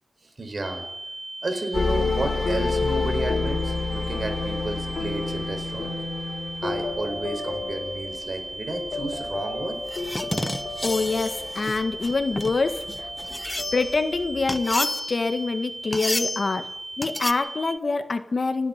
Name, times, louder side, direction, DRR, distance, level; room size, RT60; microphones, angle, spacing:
voice 1, 0.4-0.8 1.4-5.9 6.6-9.8, right 2 dB, 55° right, 7 dB, 4.5 m, -32 dB
sound 1, 0.6-17.8, right 2 dB, 30° right, 1.0 m, -37 dB
sound 2, 1.7-14.7, left 3 dB, 85° left, 3.6 m, -30 dB
sound 3, 9.9-14.0 14.5-15.3 15.9-16.5 17.0-17.3, left 1 dB, 20° left, 0.9 m, -31 dB
voice 2, 10.8-13.1 13.7-16.7 17.0-18.7, left 3 dB, 55° left, 8 dB, 1.7 m, -25 dB
29.5 x 10.0 x 9.2 m, 0.84 s
wide cardioid pair, 105°, 0 cm